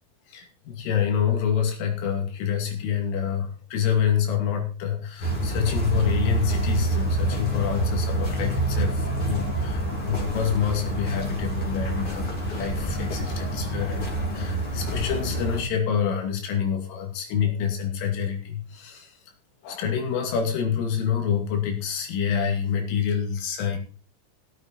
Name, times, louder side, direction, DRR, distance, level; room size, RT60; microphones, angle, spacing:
voice 1, 0.3-19.2 19.6-23.8, left 8 dB, 90° left, 2 dB, 5.1 m, -27 dB
sound 1, 5.2-15.6, right 2 dB, 30° left, 3.5 m, -27 dB
16.0 x 8.9 x 4.5 m, 0.39 s
omnidirectional pair, 5.5 m